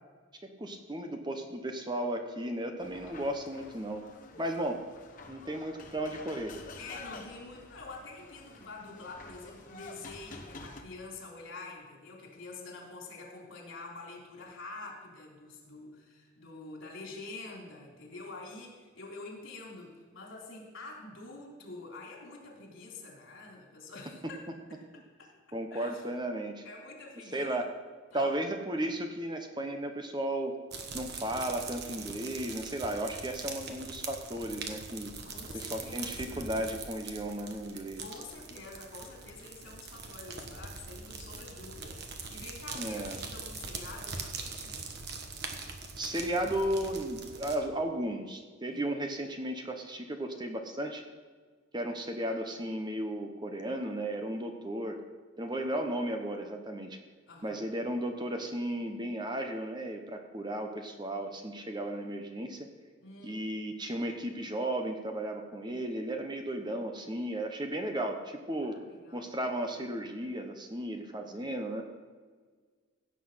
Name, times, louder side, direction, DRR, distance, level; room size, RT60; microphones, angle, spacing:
voice 1, 0.6-4.0 4.4-4.8 5.3-6.5 25.5-26.6 27.3-27.7 28.1-30.5 30.9-35.1 35.5-38.1 42.7-43.2 46.0-51.0 51.7-55.0 55.4-57.0 57.4-62.6 63.2-68.8 69.1-71.8, right 1 dB, 20° right, 5 dB, 1.0 m, -34 dB
sound 1, 2.8-10.8, left 3 dB, 40° left, 1.3 m, -49 dB
voice 2, 6.8-24.4 24.7-25.3 25.7-26.0 26.6-27.7 28.1-28.4 35.2-36.5 38.0-44.9 48.7-48.9 57.3-57.6 63.0-63.5 68.6-69.4, left 3 dB, 70° left, -1 dB, 3.6 m, -47 dB
sound 2, 30.7-47.6, right 4 dB, 50° right, 1.3 m, -42 dB
16.5 x 7.3 x 5.7 m, 1.5 s
head